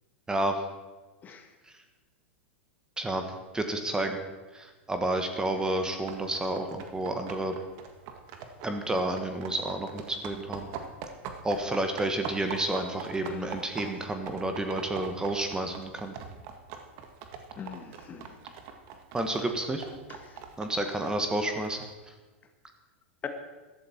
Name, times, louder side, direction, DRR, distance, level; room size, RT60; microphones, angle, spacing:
voice 1, 0.3-0.6 3.0-3.2 3.5-4.2 4.5-7.5 8.6-10.7 11.4-16.1 19.1-19.8 20.6-22.1, right 1 dB, 10° right, 6 dB, 1.4 m, -30 dB
sound 1, 6.1-21.9, right 6 dB, 50° right, 1.6 m, -43 dB
voice 2, 17.6-18.3 20.1-20.4 23.2-23.3, left 7 dB, 25° left, 6 dB, 1.5 m, -41 dB
14.0 x 12.5 x 4.4 m, 1.3 s
hypercardioid pair, 105°, 7 cm